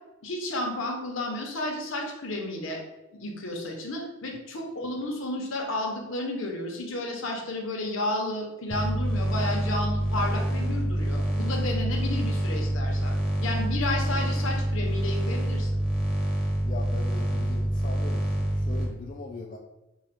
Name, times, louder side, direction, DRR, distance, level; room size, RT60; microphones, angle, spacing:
voice 1, 0.2-2.8 3.1-15.8, left 1 dB, 70° left, 1 dB, 0.9 m, -32 dB
sound 1, 8.7-18.8, right 1 dB, 5° right, 0.8 m, -27 dB
voice 2, 16.6-19.6, left 4 dB, 40° left, 0 dB, 0.3 m, -40 dB
4.8 x 2.3 x 4.2 m, 1.0 s
head